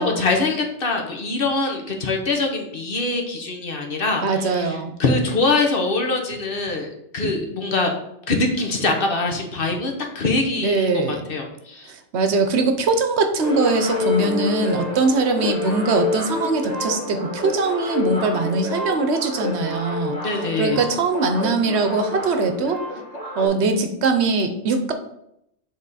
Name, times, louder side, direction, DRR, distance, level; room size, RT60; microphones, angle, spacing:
voice 1, 0.0-7.9 8.3-11.9 20.2-20.8, left 3 dB, 55° left, 2 dB, 1.2 m, -23 dB
voice 2, 4.2-4.9 10.6-11.3 11.9-20.2 20.6-22.8 23.4-24.9, right 3 dB, 70° right, 7 dB, 1.0 m, -21 dB
sound 1, 13.4-23.5, left 3 dB, 35° left, 1.6 m, -28 dB
7.5 x 3.7 x 4.1 m, 0.78 s
omnidirectional pair, 1.2 m